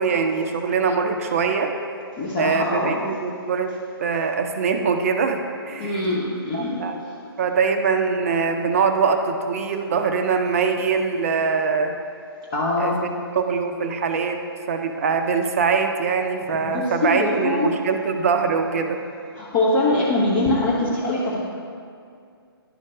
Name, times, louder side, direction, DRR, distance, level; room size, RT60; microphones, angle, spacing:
voice 1, 0.0-1.7 2.4-5.4 5.7-6.1 6.5-7.0 7.4-11.9 12.8-14.4 14.7-19.0, right 5 dB, 35° right, 6 dB, 0.5 m, -23 dB
voice 2, 2.2-3.1 5.8-6.8 12.5-13.0 16.5-17.8 19.4-21.4, left 2 dB, 25° left, -6 dB, 0.8 m, -23 dB
11.0 x 4.3 x 3.0 m, 2.3 s
figure-of-eight pair, 135°, 13 cm